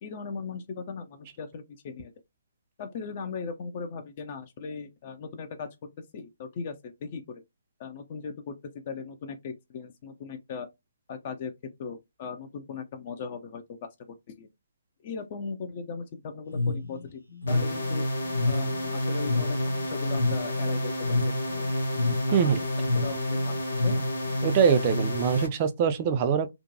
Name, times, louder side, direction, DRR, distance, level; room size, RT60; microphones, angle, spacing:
voice 1, 0.0-2.1 2.8-5.7 6.1-7.4 7.8-8.5 8.9-10.7 11.1-11.5 11.8-13.9 14.4-14.5 15.0-17.2 17.5-18.0 18.4-21.7 22.3-22.7 22.9-24.0, left 5 dB, 40° left, 0.5 m, -38 dB
sound 1, 16.5-24.4, left 3 dB, 90° left, 1.0 m, -30 dB
sound 2, 17.5-25.5, equal, 65° left, 1.2 m, -29 dB
voice 2, 24.4-26.5, right 7 dB, 30° right, 0.4 m, -23 dB
2.6 x 2.1 x 2.6 m
figure-of-eight pair, 135°, 0 cm